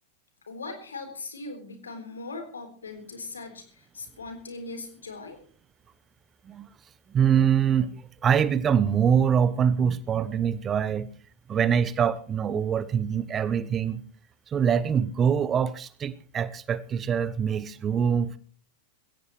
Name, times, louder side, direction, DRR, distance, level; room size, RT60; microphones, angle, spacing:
voice 1, 0.5-5.4, left 3 dB, 80° left, 6 dB, 3.9 m, -39 dB
voice 2, 7.1-11.1 11.5-14.0 14.5-18.4, right 8 dB, 25° right, 15 dB, 1.0 m, -24 dB
21.5 x 16.5 x 3.2 m, 0.41 s
figure-of-eight pair, 95°, 0 cm